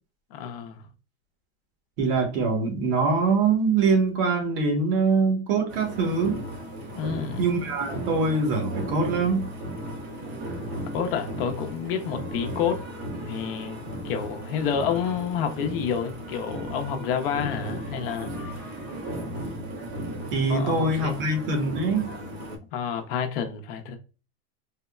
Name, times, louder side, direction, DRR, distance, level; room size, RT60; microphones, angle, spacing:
voice 1, 0.3-0.8 6.9-7.4 10.9-12.8 13.3-18.5 20.5-21.2 22.7-24.0, left 7 dB, 60° left, 0.7 m, -29 dB
voice 2, 2.0-6.4 7.4-9.5 20.3-22.1, right 4 dB, 60° right, 1.1 m, -23 dB
sound 1, 5.7-22.6, right 1 dB, 85° right, 1.3 m, -36 dB
3.4 x 2.0 x 2.3 m
supercardioid pair, 170°, 32 cm